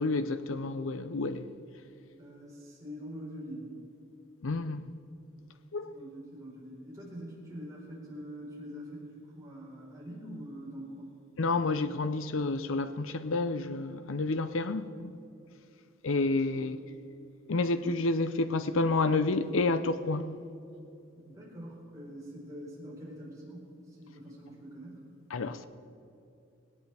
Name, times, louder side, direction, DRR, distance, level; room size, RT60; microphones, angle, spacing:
voice 1, 0.0-1.5 4.4-4.9 5.7-5.9 11.4-15.2 16.0-16.8 17.5-20.3 25.3-25.7, left 3 dB, 75° left, 0.6 m, -29 dB
voice 2, 2.2-3.7 5.9-11.1 16.5-16.7 21.1-23.7 24.0-25.0, equal, 15° right, 4.4 m, -44 dB
19.0 x 18.0 x 3.5 m
head